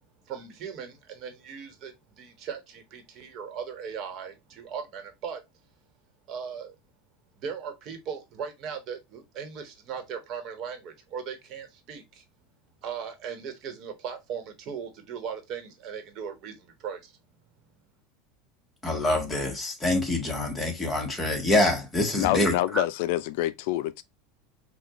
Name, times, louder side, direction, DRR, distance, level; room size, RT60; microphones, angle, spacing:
voice 1, 0.3-5.4 6.3-6.7 7.4-12.2 12.8-17.2, right 7 dB, 50° right, 1.2 m, -38 dB
voice 2, 18.8-22.5, left 1 dB, 10° left, 1.3 m, -25 dB
voice 3, 22.2-24.0, left 14 dB, 70° left, 0.3 m, -26 dB
6.0 x 2.3 x 2.9 m
supercardioid pair, 120°, 0 cm